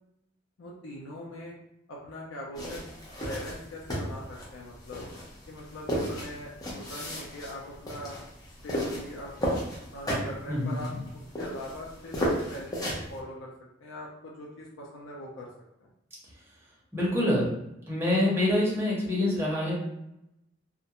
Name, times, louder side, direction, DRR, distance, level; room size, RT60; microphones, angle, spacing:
voice 1, 0.6-1.6 1.9-2.9 3.2-5.1 5.5-8.2 8.6-9.5 9.9-10.9 11.4-13.5 13.8-15.5 15.8-15.9, left 1 dB, 90° left, -3 dB, 0.5 m, -41 dB
sound 1, 2.5-13.2, equal, 20° left, 0.6 m, -34 dB
voice 2, 10.5-11.0 16.9-17.5 17.9-19.7, left 1 dB, 15° right, -6 dB, 0.8 m, -26 dB
2.4 x 2.1 x 2.8 m, 0.83 s
head